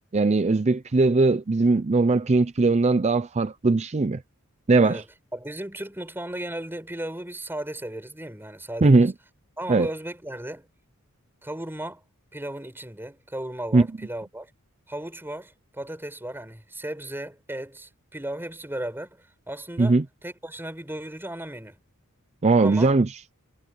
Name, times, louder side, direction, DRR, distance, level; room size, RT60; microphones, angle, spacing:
voice 1, 0.1-4.2 4.7-5.0 8.8-9.1 9.7-9.9 13.7-13.8 19.8-20.0 22.4-23.1, right 3 dB, 30° right, 0.5 m, -19 dB
voice 2, 4.8-9.1 9.6-10.7 11.4-12.0 12.3-14.5 14.9-21.8 22.6-22.9, right 1 dB, 10° right, 4.6 m, -36 dB
head